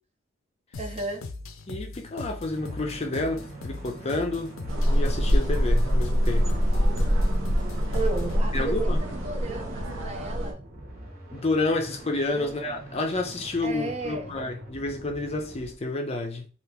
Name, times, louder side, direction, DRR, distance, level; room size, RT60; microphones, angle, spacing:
sound 1, 0.7-8.4, left 3 dB, 85° left, 0.5 m, -40 dB
voice 1, 0.8-1.3 7.9-10.6 12.3-12.6 13.6-14.4, right 3 dB, 30° right, 0.7 m, -34 dB
voice 2, 1.7-4.5 4.9-6.6 8.5-9.0 11.3-16.5, left 2 dB, 30° left, 0.5 m, -29 dB
sound 2, 2.5-15.7, right 1 dB, 50° right, 1.1 m, -44 dB
sound 3, 4.7-10.5, equal, 75° right, 0.7 m, -24 dB
2.9 x 2.4 x 3.5 m
head